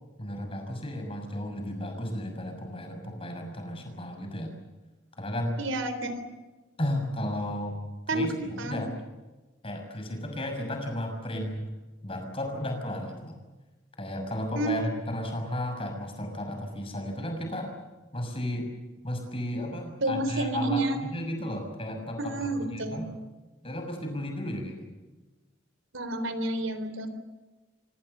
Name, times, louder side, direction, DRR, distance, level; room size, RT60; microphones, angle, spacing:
voice 1, 0.2-4.5 5.2-5.6 6.8-7.8 8.1-8.9 9.6-11.7 12.0-13.4 14.0-17.8 18.1-18.7 19.0-23.1 23.6-24.8, left 1 dB, 30° left, 4 dB, 6.3 m, -34 dB
voice 2, 5.6-6.3 8.1-8.8 14.5-14.7 20.0-21.0 22.2-23.0 25.9-27.1, right 2 dB, 90° right, 10 dB, 3.7 m, -30 dB
26.5 x 25.0 x 6.8 m, 1.2 s
head